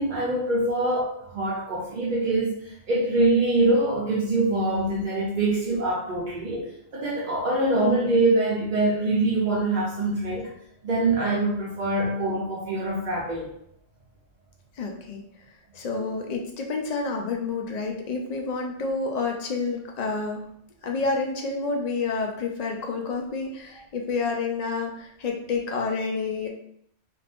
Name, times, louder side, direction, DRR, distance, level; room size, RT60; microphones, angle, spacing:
voice 1, 0.0-10.5 10.8-13.5, right 2 dB, 55° right, -5 dB, 0.6 m, -24 dB
voice 2, 14.8-15.2 15.7-20.4 20.8-26.5, left 4 dB, 60° left, 1 dB, 0.4 m, -29 dB
2.5 x 2.4 x 3.4 m, 0.69 s
omnidirectional pair, 1.2 m